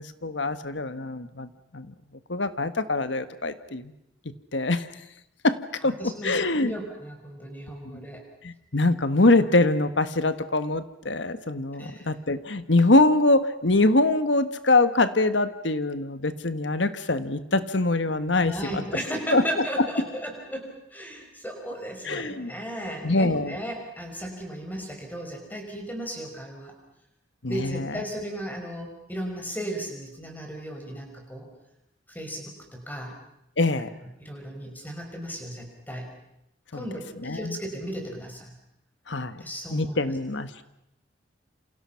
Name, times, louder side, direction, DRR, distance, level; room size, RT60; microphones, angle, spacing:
voice 1, 0.0-1.9 2.3-3.9 4.5-4.9 5.4-5.6 5.8-6.7 7.9-8.0 8.4-18.8 19.3-19.4 19.8-19.9 22.0-22.5 23.0-23.6 27.4-28.0 33.6-33.9 36.7-36.8 37.2-37.6 39.1-39.4 39.7-40.5, left 2 dB, 75° left, 11 dB, 1.5 m, -24 dB
voice 2, 5.8-8.2 11.8-12.1 18.3-26.7 27.5-31.5 32.1-33.1 34.2-36.1 36.7-38.5 39.4-40.0, equal, 10° left, 2 dB, 5.7 m, -35 dB
29.0 x 27.5 x 5.9 m, 0.81 s
head